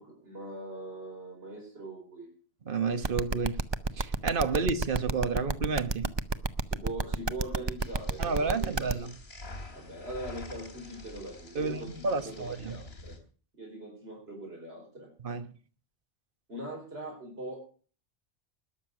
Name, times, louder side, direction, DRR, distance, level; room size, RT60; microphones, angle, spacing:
voice 1, 0.0-2.3 6.7-8.8 9.7-11.9 12.2-13.1 13.6-15.1 16.5-17.7, right 1 dB, 75° right, 4.8 m, -41 dB
voice 2, 2.7-3.6 4.0-6.1 8.2-9.1 11.5-12.8 15.2-15.5, right 4 dB, 55° right, 1.4 m, -31 dB
sound 1, 3.0-8.9, right 3 dB, 30° right, 0.6 m, -29 dB
sound 2, 7.8-13.2, left 2 dB, 75° left, 3.7 m, -47 dB
20.0 x 6.8 x 6.5 m
omnidirectional pair, 1.1 m